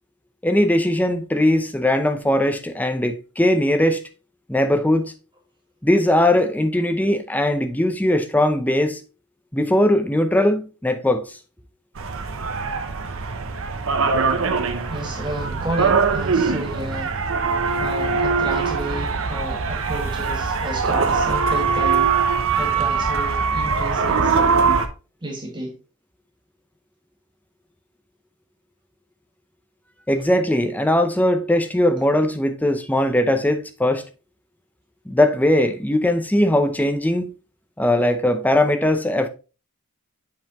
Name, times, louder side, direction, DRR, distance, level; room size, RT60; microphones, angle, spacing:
voice 1, 0.4-4.0 4.5-5.1 5.8-9.0 9.5-11.3 30.1-34.0 35.1-37.3 37.8-39.3, left 1 dB, 10° left, 0.6 m, -19 dB
sound 1, 12.0-24.9, right 5 dB, 65° right, 0.8 m, -22 dB
voice 2, 14.9-17.2 17.8-24.8 25.2-25.8, right 1 dB, 20° right, 1.7 m, -31 dB
7.5 x 5.5 x 3.0 m
head